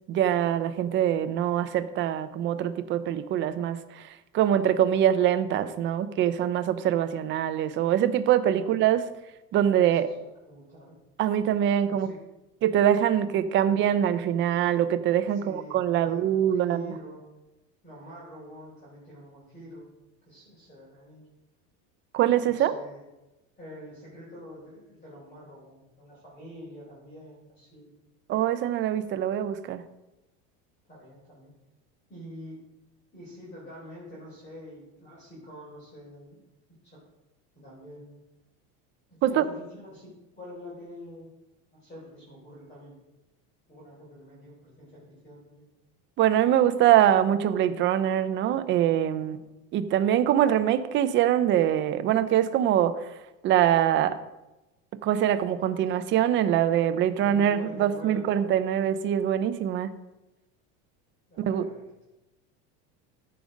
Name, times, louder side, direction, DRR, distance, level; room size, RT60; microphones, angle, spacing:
voice 1, 0.1-4.1 4.3-9.1 9.5-10.1 11.2-12.1 12.6-16.9 22.1-22.7 28.3-29.8 39.2-39.4 46.2-49.4 49.7-53.0 53.4-54.2 55.0-59.9 61.5-61.6, right 10 dB, 30° right, 11 dB, 0.5 m, -24 dB
voice 2, 9.9-10.9 11.9-12.2 15.3-17.2 17.8-19.9 20.2-21.2 22.4-23.0 23.6-27.9 30.9-31.5 32.1-32.6 33.1-36.4 36.8-37.0 37.6-38.1 39.1-41.3 41.7-43.0 43.7-45.7 49.1-49.3 57.0-58.4 61.3-61.9, equal, 20° left, -6 dB, 3.6 m, -46 dB
14.5 x 5.2 x 5.0 m, 0.99 s
cardioid pair, 165°, 38 cm